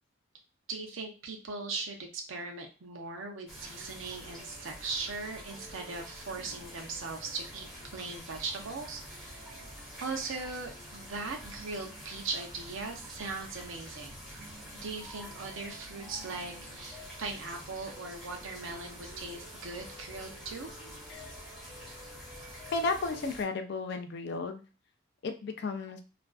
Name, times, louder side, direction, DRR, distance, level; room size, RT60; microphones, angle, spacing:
voice 1, 0.7-9.4 10.0-14.2 14.7-20.7, right 3 dB, 70° right, 3 dB, 0.6 m, -39 dB
sound 1, 3.5-23.4, equal, ahead, 0.7 m, -47 dB
voice 2, 22.7-24.6 25.2-26.0, left 3 dB, 50° left, 7 dB, 0.3 m, -33 dB
2.4 x 2.2 x 2.3 m, 0.34 s
head